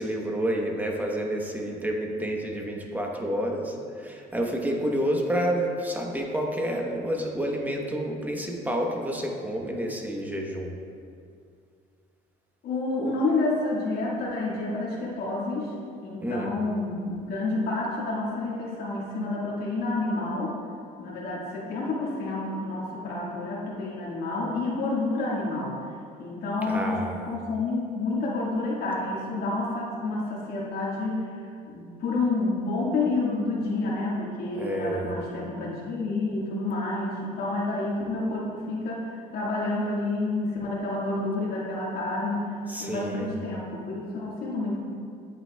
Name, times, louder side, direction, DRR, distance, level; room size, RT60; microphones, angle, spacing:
voice 1, 0.0-10.7 16.2-16.5 26.7-27.3 34.6-35.1 42.7-43.3, equal, 10° right, 0 dB, 0.9 m, -29 dB
voice 2, 12.6-15.7 16.0-20.6 21.0-25.7 26.2-42.5 42.8-44.8, left 2 dB, 65° left, -5 dB, 1.7 m, -29 dB
9.0 x 7.9 x 2.3 m, 2.4 s
cardioid pair, 110°, 17 cm